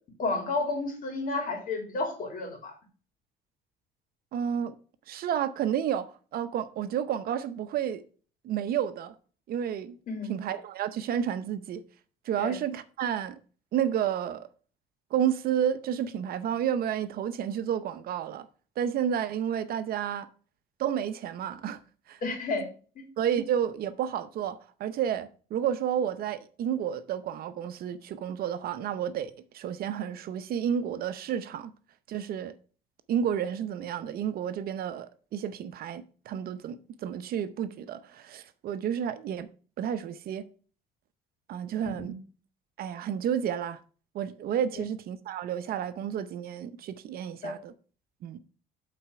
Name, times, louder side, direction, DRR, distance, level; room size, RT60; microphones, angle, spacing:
voice 1, 0.2-2.7 10.1-10.3 12.4-12.5 22.2-22.6 22.9-23.0 42.0-42.1 44.7-44.8 47.4-47.5, left 3 dB, 55° left, 2.8 m, -31 dB
voice 2, 4.3-4.7 5.1-8.0 8.4-9.1 9.5-10.0 10.3-11.8 12.3-13.4 13.7-14.5 15.1-18.5 18.8-20.3 20.8-21.8 22.1-22.2 23.2-31.7 32.1-32.5 33.1-39.5 39.8-40.4 41.5-42.1 42.8-43.8 44.1-47.7 48.2-48.4, right 9 dB, 60° right, 0.7 m, -31 dB
7.8 x 4.2 x 5.9 m
cardioid pair, 110°, 17 cm